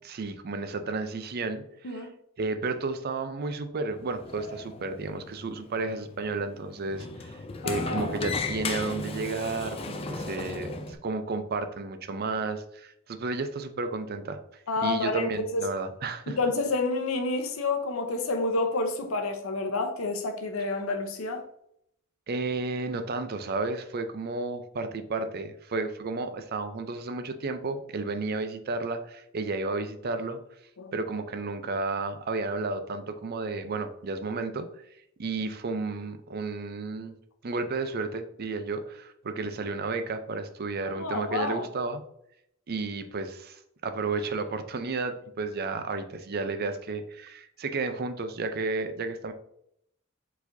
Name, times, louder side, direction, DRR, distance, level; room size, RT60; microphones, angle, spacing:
voice 1, 0.0-2.1 2.4-7.4 7.6-14.4 14.8-16.4 22.3-30.4 30.9-34.8 35.2-37.1 37.4-42.0 42.7-49.3, right 3 dB, 50° right, 0.5 m, -32 dB
Sliding door, 3.9-11.0, left 3 dB, 30° left, 0.4 m, -36 dB
voice 2, 7.6-8.1 14.7-15.6 16.3-21.4 30.8-30.9 40.9-41.7, left 3 dB, 90° left, 0.8 m, -29 dB
4.7 x 4.1 x 2.6 m
head